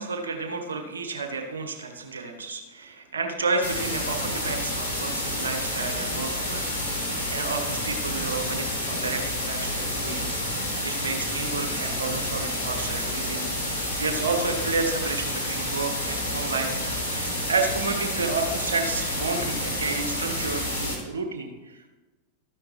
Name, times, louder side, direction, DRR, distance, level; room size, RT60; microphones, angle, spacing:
voice 1, 0.0-13.4 14.0-16.7 17.1-21.9, right 4 dB, 70° right, 5 dB, 1.3 m, -31 dB
sound 1, 3.6-21.0, left 1 dB, 85° left, 2.6 m, -29 dB
13.5 x 9.9 x 3.2 m, 1.2 s
figure-of-eight pair, 90°, 0 cm